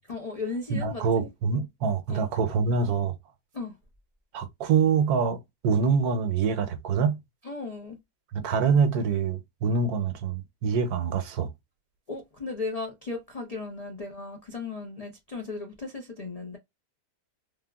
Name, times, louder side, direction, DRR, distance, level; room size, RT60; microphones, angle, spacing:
voice 1, 0.1-1.3 2.1-2.3 3.5-3.8 7.4-8.0 12.1-16.6, left 3 dB, 75° left, 0.3 m, -36 dB
voice 2, 0.7-3.1 4.3-7.2 8.3-11.5, right 5 dB, 70° right, 1.2 m, -25 dB
3.5 x 2.2 x 2.3 m
omnidirectional pair, 1.8 m